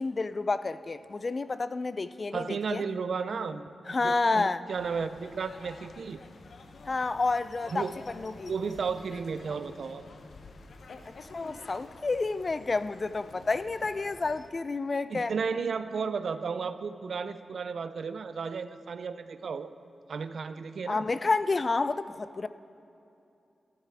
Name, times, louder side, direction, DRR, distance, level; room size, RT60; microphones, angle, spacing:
voice 1, 0.0-2.8 3.9-4.6 6.9-7.8 8.2-8.5 11.3-15.3 20.9-22.5, left 3 dB, 40° left, 0.3 m, -29 dB
voice 2, 2.3-3.7 4.0-6.2 7.7-7.9 8.5-10.0 15.1-19.7 20.1-21.0, right 5 dB, 70° right, 0.4 m, -33 dB
sound 1, 4.7-14.5, left 3 dB, 65° left, 0.7 m, -49 dB
13.0 x 12.5 x 3.4 m
wide cardioid pair, 85°, 0 cm